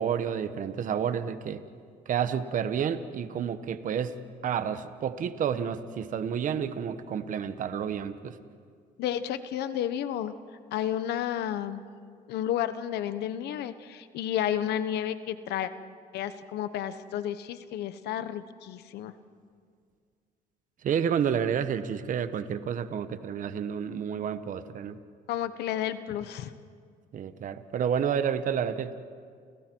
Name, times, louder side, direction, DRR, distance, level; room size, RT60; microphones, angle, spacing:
voice 1, 0.0-1.6 2.1-4.1 4.4-8.4 20.8-25.0 27.1-28.9, right 8 dB, 50° right, 11 dB, 1.2 m, -30 dB
voice 2, 9.0-10.3 10.7-11.8 12.3-15.7 16.1-19.1 25.3-26.5, left 10 dB, 80° left, 12 dB, 1.1 m, -31 dB
30.0 x 29.5 x 4.6 m, 2.1 s
cardioid pair, 110°, 17 cm